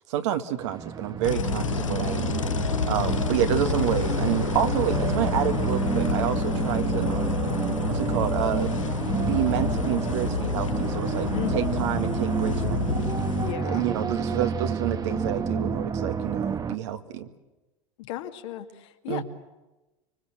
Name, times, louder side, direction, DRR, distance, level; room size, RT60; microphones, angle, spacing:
voice 1, 0.1-2.3 2.9-7.4 7.9-8.7 9.1-13.2 13.6-17.3 19.1-19.2, right 11 dB, 65° right, 8 dB, 1.9 m, -29 dB
sound 1, 0.6-16.8, right 6 dB, 25° right, 1.2 m, -29 dB
sound 2, 1.2-13.5, left 6 dB, 90° left, 0.9 m, -29 dB
voice 2, 11.3-11.8 13.4-13.9 18.0-19.2, left 13 dB, 65° left, 5 dB, 2.2 m, -35 dB
25.5 x 24.0 x 7.6 m, 1.1 s
hypercardioid pair, 85°, 16 cm